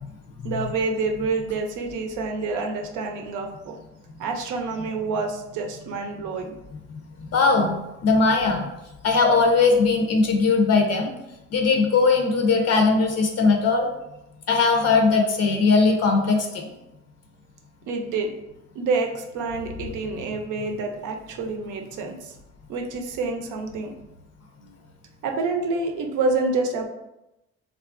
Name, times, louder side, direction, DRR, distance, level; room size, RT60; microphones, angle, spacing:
voice 1, 0.4-3.8 4.2-6.5 17.9-18.4 18.8-22.3 22.7-23.9 25.2-26.9, right 3 dB, 80° right, 4 dB, 0.6 m, -27 dB
voice 2, 7.3-8.7 9.0-11.1 11.5-13.9 14.5-16.7, left 4 dB, 60° left, 3 dB, 0.5 m, -19 dB
3.1 x 2.4 x 2.4 m, 0.93 s
cardioid pair, 90°, 30 cm